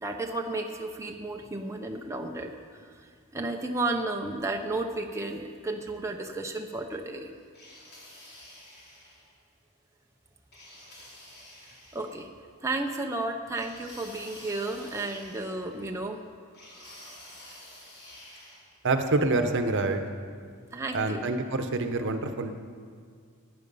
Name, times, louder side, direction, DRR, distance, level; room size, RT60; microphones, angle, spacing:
voice 1, 0.0-7.3 11.9-12.3 12.6-16.2 16.8-16.9 20.7-21.3, right 2 dB, 15° right, 2 dB, 0.7 m, -33 dB
sound 1, 7.5-9.3 10.5-12.2 13.5-15.9 16.5-18.7, left 1 dB, 50° left, 3.9 m, -49 dB
voice 2, 18.8-20.0 20.9-22.6, right 2 dB, 60° right, 7 dB, 1.0 m, -26 dB
15.5 x 9.8 x 5.5 m, 2.1 s
head